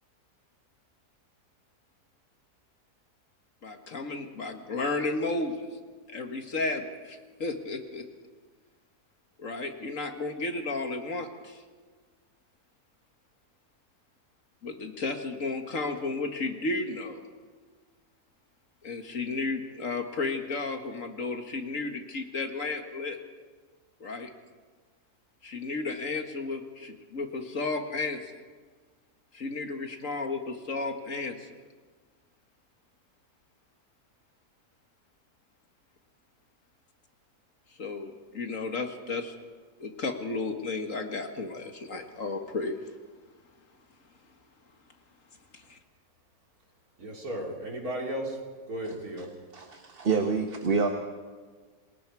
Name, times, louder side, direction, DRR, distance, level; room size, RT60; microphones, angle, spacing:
voice 1, 3.6-5.7 6.1-8.0 9.4-11.6 14.6-17.2 18.8-23.2 24.0-24.3 25.4-28.2 29.3-31.5 37.8-39.3 39.8-42.8 45.5-45.8, left 3 dB, 55° left, 6 dB, 1.9 m, -33 dB
voice 2, 47.0-48.4 48.7-49.3, right 1 dB, 65° right, 0 dB, 3.9 m, -34 dB
voice 3, 48.8-49.3 49.5-50.9, right 5 dB, 40° right, 4 dB, 1.3 m, -28 dB
28.0 x 20.0 x 4.7 m, 1.5 s
omnidirectional pair, 1.7 m